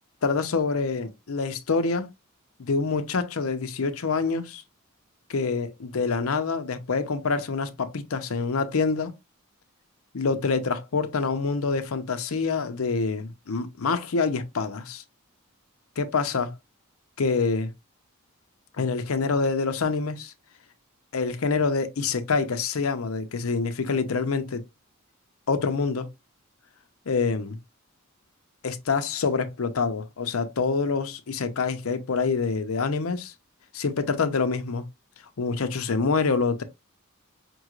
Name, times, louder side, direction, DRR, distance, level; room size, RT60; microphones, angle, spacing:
voice 1, 0.2-2.1 2.6-4.6 5.3-9.1 10.1-15.0 16.0-16.5 17.2-17.7 18.8-20.3 21.1-24.6 25.5-26.1 27.1-27.6 28.6-33.3 33.7-34.8 35.4-36.6, left 4 dB, 75° left, 0.6 m, -26 dB
5.3 x 3.1 x 2.4 m
head